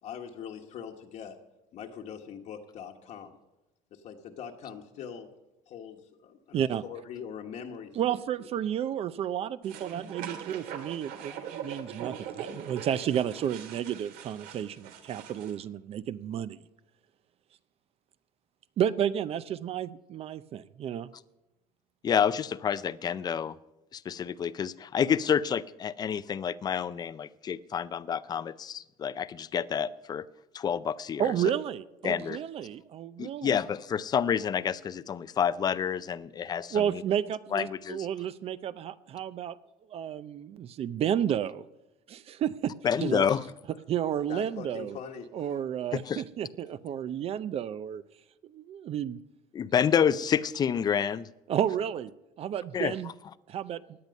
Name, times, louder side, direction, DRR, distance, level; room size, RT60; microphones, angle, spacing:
voice 1, 0.0-1.4 1.7-3.4 3.9-5.3 5.7-8.5 44.3-45.6, left 7 dB, 50° left, 2 dB, 1.3 m, -42 dB
voice 2, 6.5-6.8 8.0-16.6 18.8-21.1 31.2-33.6 36.7-39.6 39.9-41.6 42.1-42.7 43.0-43.3 43.9-45.0 45.3-48.0 48.4-49.2 51.5-52.1 52.4-53.1 53.5-53.8, right 9 dB, 40° right, 15 dB, 0.5 m, -31 dB
sound 1, 9.6-15.5, right 8 dB, 75° right, 2.1 m, -42 dB
voice 3, 22.0-23.5 23.9-30.3 30.5-31.3 32.0-32.4 33.2-37.0 37.5-38.1 42.8-43.4 46.1-46.2 49.5-51.3 52.7-52.9, left 8 dB, 25° left, 16 dB, 0.5 m, -28 dB
17.0 x 10.5 x 5.3 m, 0.99 s
cardioid pair, 150°, 15 cm